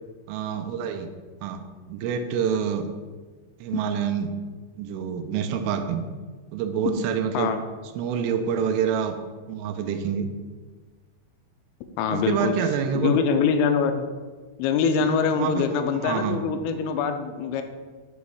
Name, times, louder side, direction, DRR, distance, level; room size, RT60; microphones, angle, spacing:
voice 1, 0.3-1.1 1.4-2.9 3.6-4.3 4.8-6.0 6.5-7.5 8.0-9.2 9.5-10.3 12.1-13.2 15.0-15.1 15.4-16.4, right 7 dB, 85° right, 6 dB, 3.0 m, -27 dB
voice 2, 12.0-12.5 12.9-14.0 14.6-17.6, left 6 dB, 85° left, 7 dB, 3.1 m, -24 dB
8.2 x 3.0 x 6.3 m, 1.4 s
omnidirectional pair, 5.7 m